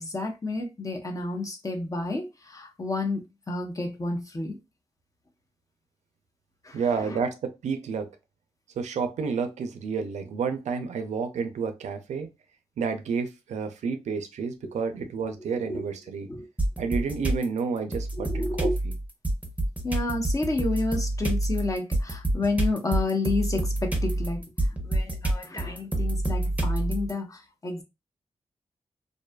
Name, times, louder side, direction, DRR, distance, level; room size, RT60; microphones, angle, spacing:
voice 1, 0.0-4.6 6.6-7.2 14.6-14.7 15.0-15.1 15.5-15.8 16.3-16.5 18.2-18.8 19.8-27.8, left 2 dB, 30° left, 0.7 m, -31 dB
voice 2, 6.7-8.1 8.8-12.3 12.8-16.3 16.8-18.3 18.6-18.7, right 5 dB, 90° right, 0.4 m, -30 dB
sound 1, 16.6-17.4 17.9-27.1, right 1 dB, 10° right, 0.7 m, -27 dB
2.5 x 2.3 x 2.2 m
cardioid pair, 60°, 12 cm